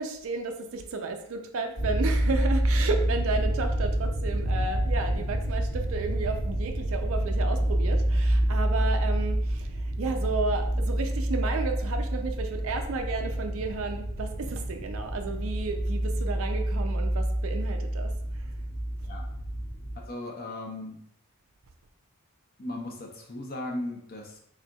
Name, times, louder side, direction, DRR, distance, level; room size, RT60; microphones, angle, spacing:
voice 1, 0.0-18.5, right 3 dB, 65° right, 6 dB, 0.4 m, -33 dB
sound 1, 1.8-20.0, right 1 dB, 65° left, 1.0 m, -28 dB
voice 2, 20.0-21.0 22.6-24.4, left 1 dB, 45° left, 1 dB, 0.6 m, -37 dB
4.1 x 3.6 x 2.2 m, 0.67 s
head